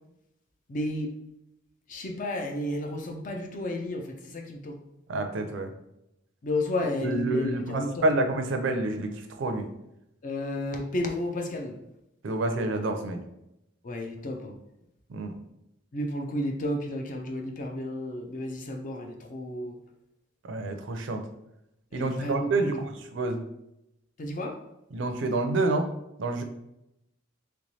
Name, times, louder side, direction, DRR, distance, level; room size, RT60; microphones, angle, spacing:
voice 1, 0.7-1.1 1.9-4.7 6.4-8.1 10.2-11.8 13.8-14.6 15.9-19.7 21.9-22.5 24.2-24.5, left 1 dB, 40° left, 3 dB, 0.4 m, -32 dB
voice 2, 5.1-5.7 7.0-9.7 12.2-13.2 15.1-15.4 20.5-21.2 21.9-23.4 24.9-25.9 26.2-26.4, right 2 dB, 60° right, 5 dB, 0.4 m, -28 dB
3.3 x 3.1 x 2.7 m, 0.85 s
head